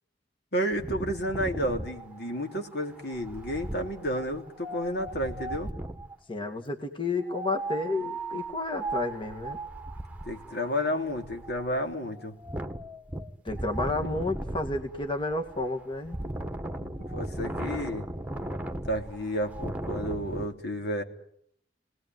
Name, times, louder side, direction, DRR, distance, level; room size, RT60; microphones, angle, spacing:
voice 1, 0.5-5.7 10.2-12.3 16.8-18.1 18.9-21.0, equal, 65° left, 3 dB, 3.4 m, -31 dB
Wind, 0.7-6.1 7.2-20.5, right 2 dB, 10° right, 1.7 m, -37 dB
voice 2, 6.3-9.6 13.4-16.2, left 2 dB, 30° left, 4 dB, 1.9 m, -31 dB
29.5 x 19.5 x 9.4 m, 0.71 s
head